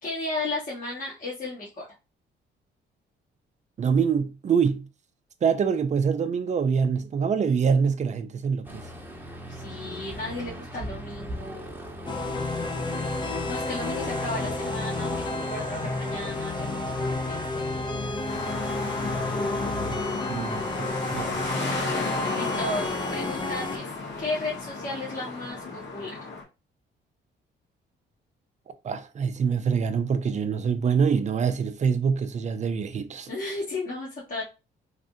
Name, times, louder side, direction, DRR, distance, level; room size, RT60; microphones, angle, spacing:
voice 1, 0.0-1.8 9.5-11.8 13.5-17.7 22.3-23.9 24.2-26.2 33.3-34.4, left 2 dB, 45° left, 1.3 m, -34 dB
voice 2, 3.8-4.9 5.4-8.8 20.3-21.4 28.8-33.3, right 6 dB, 35° right, 0.5 m, -25 dB
Aircraft, 8.6-20.2, equal, 10° right, 1.1 m, -40 dB
sound 1, 12.1-23.8, left 2 dB, 25° left, 0.6 m, -31 dB
sound 2, 18.3-26.4, left 3 dB, 65° left, 1.4 m, -33 dB
3.2 x 2.5 x 2.7 m
cardioid pair, 90°, 20 cm